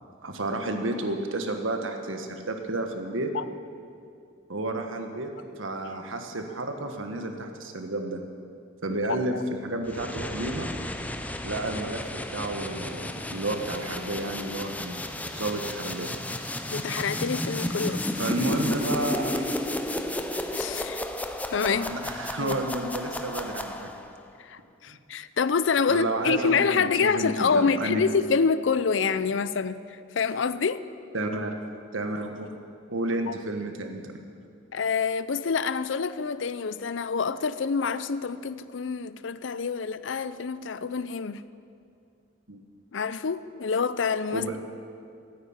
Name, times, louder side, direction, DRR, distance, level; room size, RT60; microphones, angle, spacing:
voice 1, 0.2-3.3 4.5-5.3 5.6-8.2 8.8-10.8 11.4-12.0 12.3-15.0 15.3-16.2 18.2-19.5 21.7-23.9 24.9-25.0 25.9-28.0 31.1-31.7 31.9-32.5 32.9-34.1 42.5-42.6 44.3-44.6, right 2 dB, 80° right, 4 dB, 1.6 m, -31 dB
voice 2, 9.0-9.4 16.7-18.0 20.5-21.1 21.5-21.9 22.4-22.6 24.4-30.8 33.3-33.4 34.7-41.4 42.9-44.5, left 5 dB, 65° left, 15 dB, 0.5 m, -27 dB
sound 1, 9.9-24.2, left 1 dB, 10° left, 0.6 m, -33 dB
15.0 x 9.5 x 9.0 m, 2.4 s
head